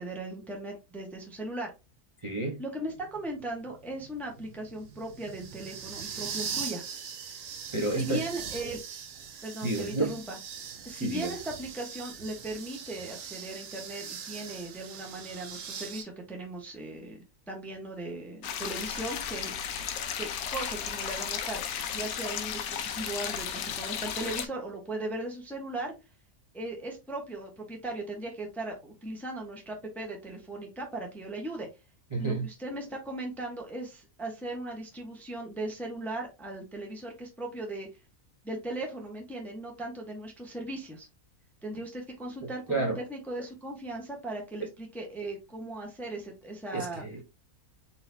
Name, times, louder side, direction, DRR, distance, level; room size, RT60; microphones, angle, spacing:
voice 1, 0.0-1.7 2.6-6.8 7.8-8.8 9.4-10.4 10.8-19.5 20.0-21.6 21.9-25.9 26.5-31.7 32.2-37.9 38.4-41.1 41.6-47.0, right 2 dB, ahead, 0.8 m, -38 dB
voice 2, 2.2-2.6 7.7-8.2 9.6-10.2 11.0-11.3 32.1-32.5 42.4-43.0 46.7-47.2, right 2 dB, 25° right, 0.8 m, -30 dB
sound 1, 2.9-16.0, right 7 dB, 65° right, 1.1 m, -41 dB
sound 2, 18.4-24.5, left 8 dB, 80° left, 1.1 m, -34 dB
4.3 x 3.7 x 2.7 m
omnidirectional pair, 1.6 m